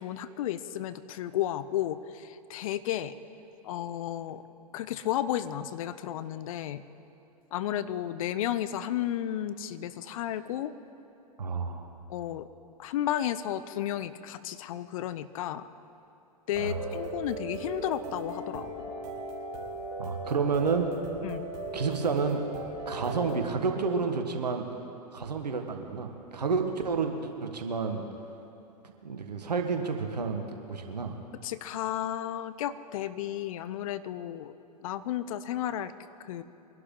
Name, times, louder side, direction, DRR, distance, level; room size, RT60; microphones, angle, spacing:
voice 1, 0.0-3.1 3.6-4.4 4.7-6.8 7.5-10.7 12.1-12.5 12.8-15.7 16.5-18.7 21.2-21.5 31.4-34.5 34.8-35.9 36.2-36.4, left 11 dB, 60° left, 14 dB, 0.7 m, -33 dB
voice 2, 11.4-11.9 16.6-16.8 20.0-20.9 21.7-22.4 22.8-24.6 25.1-28.0 28.8-31.2, right 5 dB, 85° right, 4 dB, 1.6 m, -30 dB
sound 1, 16.5-23.4, right 2 dB, 50° right, 2.9 m, -38 dB
23.5 x 11.5 x 3.9 m, 2.9 s
hypercardioid pair, 100°, 20 cm